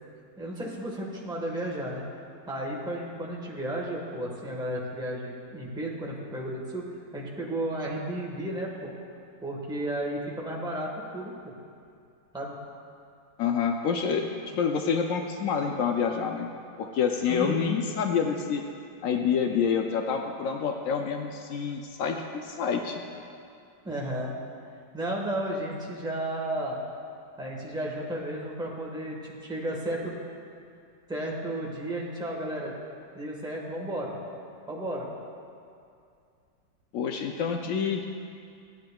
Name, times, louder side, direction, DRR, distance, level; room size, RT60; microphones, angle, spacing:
voice 1, 0.4-2.0 2.5-6.9 7.1-8.9 9.4-11.5 12.3-12.6 17.3-17.8 23.8-24.3 24.9-26.8 27.4-30.2 31.1-32.7 33.1-34.2 34.7-35.1, right 1 dB, 5° right, -3 dB, 1.0 m, -33 dB
voice 2, 13.4-16.5 16.8-18.6 19.0-22.2 22.4-23.0 36.9-38.0, left 6 dB, 90° left, 3 dB, 0.7 m, -27 dB
14.5 x 9.3 x 2.3 m, 2.4 s
omnidirectional pair, 2.0 m